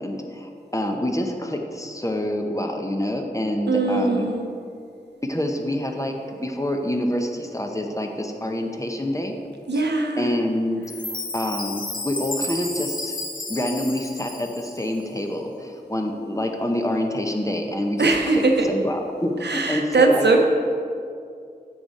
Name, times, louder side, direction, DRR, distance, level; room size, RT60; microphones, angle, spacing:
voice 1, 0.0-4.3 5.2-9.3 9.7-9.8 10.2-13.1 13.5-20.4, left 1 dB, 20° left, 3 dB, 0.8 m, -27 dB
voice 2, 3.7-4.5 9.7-10.3 18.0-18.7 19.4-20.4, right 3 dB, 85° right, 2 dB, 0.7 m, -20 dB
Chime, 10.8-15.1, left 2 dB, 55° left, 0.9 m, -32 dB
6.9 x 6.5 x 4.1 m, 2.4 s
wide cardioid pair, 45°, 17 cm